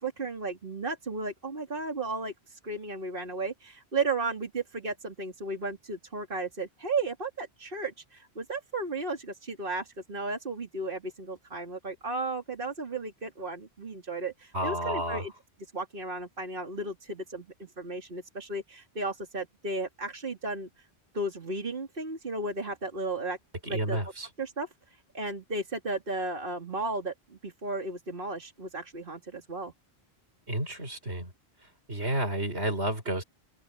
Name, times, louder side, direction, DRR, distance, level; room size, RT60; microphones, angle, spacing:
voice 1, 0.0-15.3 15.7-20.7 21.1-23.4 23.6-24.0 24.4-24.7 25.1-29.7, right 3 dB, 55° right, 3.1 m, -34 dB
voice 2, 14.5-15.3 23.6-24.3 30.5-31.3 31.9-33.2, right 1 dB, 85° right, 6.0 m, -31 dB
omnidirectional pair, 1.1 m